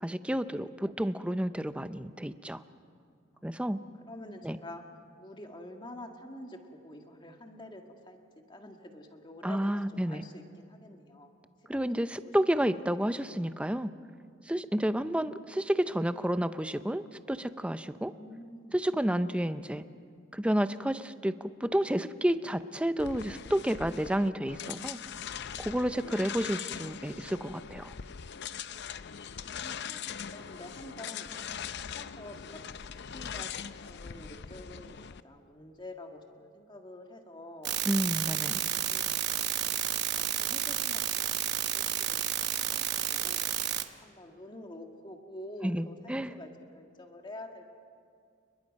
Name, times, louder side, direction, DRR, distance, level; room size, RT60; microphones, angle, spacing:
voice 1, 0.0-2.6 3.4-3.8 4.4-4.6 9.4-10.2 11.7-13.9 14.5-18.1 18.7-19.8 20.3-25.0 25.6-27.9 37.9-38.6 45.6-46.3, right 1 dB, 5° right, 12 dB, 0.5 m, -30 dB
voice 2, 3.3-4.8 5.2-8.2 8.5-11.4 11.9-12.3 14.8-15.1 18.0-18.8 29.2-31.4 31.9-32.7 33.1-33.5 33.9-37.8 38.3-39.8 40.1-42.8 43.1-43.5 44.0-47.7, left 1 dB, 25° left, 3 dB, 1.8 m, -48 dB
sound 1, 23.0-35.2, left 8 dB, 55° left, 0.5 m, -41 dB
sound 2, 37.7-43.8, right 11 dB, 55° right, 1.0 m, -31 dB
30.0 x 21.0 x 5.4 m, 2.3 s
head